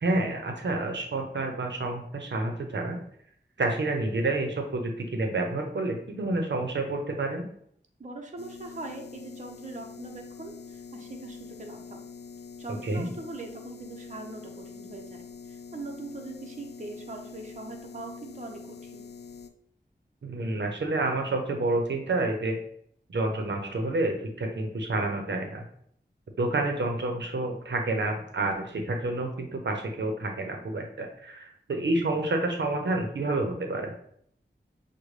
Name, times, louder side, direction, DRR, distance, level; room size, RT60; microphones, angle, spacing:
voice 1, 0.0-3.0 3.6-7.5 12.8-13.1 20.2-22.6 23.1-25.6 26.4-33.9, right 2 dB, 85° right, 3 dB, 0.7 m, -29 dB
voice 2, 8.0-12.0 12.6-19.1, right 2 dB, 45° right, 2 dB, 0.7 m, -42 dB
sound 1, 8.4-19.5, left 6 dB, 65° left, 0.4 m, -45 dB
6.4 x 2.2 x 3.2 m, 0.66 s
wide cardioid pair, 55°, 18 cm